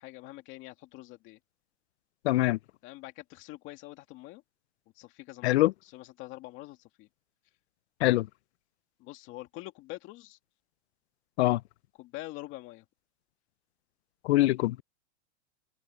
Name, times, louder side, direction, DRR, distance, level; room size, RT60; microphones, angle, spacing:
voice 1, 0.0-1.4 2.8-4.4 5.0-7.1 9.0-10.4 12.0-12.8, left 19 dB, 30° left, 2.3 m, -45 dB
voice 2, 2.2-2.6 5.4-5.7 8.0-8.3 11.4-11.6 14.2-14.8, left 17 dB, 60° left, 0.5 m, -23 dB
supercardioid pair, 165°, 37 cm